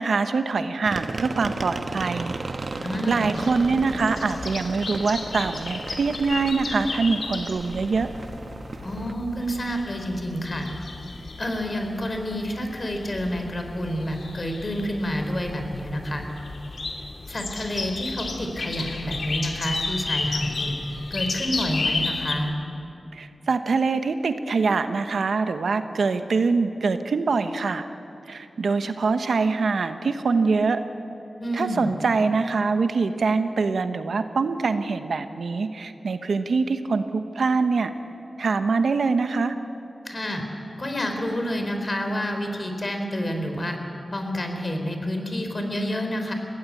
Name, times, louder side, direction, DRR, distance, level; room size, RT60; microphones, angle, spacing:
voice 1, 0.0-2.3 3.1-8.1 23.1-27.9 28.3-30.8 31.5-37.9 38.4-39.5, right 4 dB, 80° right, 9 dB, 1.0 m, -24 dB
sound 1, 0.8-9.1, right 3 dB, 60° right, 1.1 m, -35 dB
voice 2, 2.8-3.3 8.8-10.7 11.4-16.2 17.3-20.7 21.1-22.5 31.4-31.9 40.0-40.4 40.8-43.8 44.1-46.3, equal, 45° left, 4 dB, 4.1 m, -28 dB
sound 2, 3.3-22.4, left 3 dB, 75° left, 2.1 m, -33 dB
22.0 x 17.0 x 8.5 m, 2.7 s
cardioid pair, 40°, 0 cm